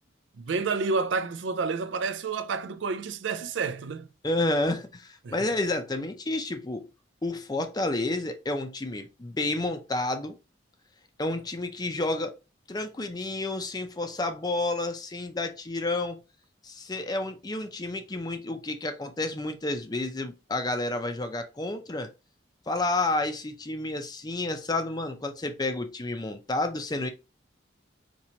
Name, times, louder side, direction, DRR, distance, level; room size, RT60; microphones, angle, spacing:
voice 1, 0.4-4.1 5.2-5.5, right 4 dB, 75° right, 0.4 m, -29 dB
voice 2, 4.2-6.9 7.2-10.3 11.2-12.4 12.7-16.2 16.6-22.1 22.7-27.1, left 2 dB, 20° left, 0.5 m, -30 dB
4.4 x 3.0 x 2.8 m
head